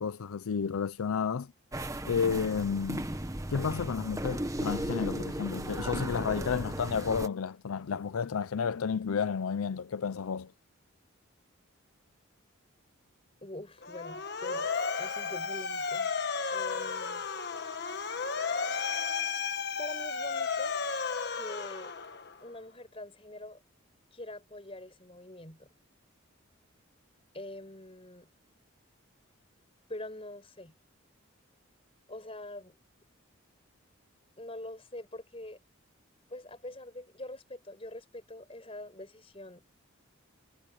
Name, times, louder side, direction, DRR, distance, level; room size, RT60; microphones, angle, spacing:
voice 1, 0.0-1.5 2.0-3.1 3.5-10.5, left 6 dB, 90° left, 0.5 m, -31 dB
sound 1, 1.7-7.3, right 1 dB, 15° right, 1.2 m, -36 dB
voice 2, 13.4-14.7 15.0-16.1 16.5-17.3 19.8-20.8 21.3-21.9 22.4-23.6 24.1-25.7 27.3-28.3 29.9-30.8 32.1-32.8 34.4-35.6 36.3-39.6, left 1 dB, 25° left, 4.9 m, -44 dB
Motor vehicle (road) / Siren, 13.8-22.4, left 5 dB, 50° left, 1.5 m, -33 dB
head